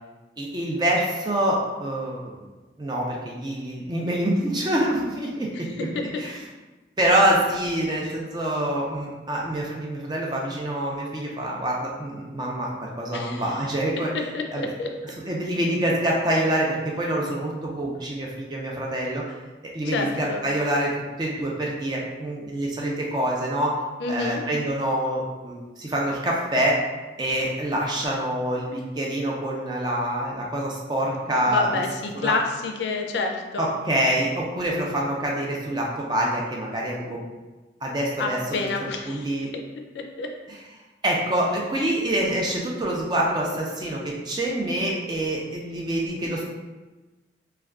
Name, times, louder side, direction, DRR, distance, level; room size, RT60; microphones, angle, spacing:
voice 1, 0.4-2.5 2.8-5.7 6.2-6.4 7.0-14.1 14.5-14.7 15.2-19.2 19.6-20.9 21.2-23.8 24.1-26.8 27.2-31.8 32.2-32.3 33.6-37.2 37.8-38.7 39.1-39.5 41.0-46.4, right 1 dB, 25° right, -2 dB, 0.4 m, -26 dB
voice 2, 5.5-6.0 13.1-13.5 14.1-14.9 19.9-20.4 24.0-24.4 31.5-33.7 38.2-39.6 39.9-40.3, left 3 dB, 75° left, 3 dB, 0.3 m, -28 dB
2.3 x 2.2 x 3.4 m, 1.2 s
head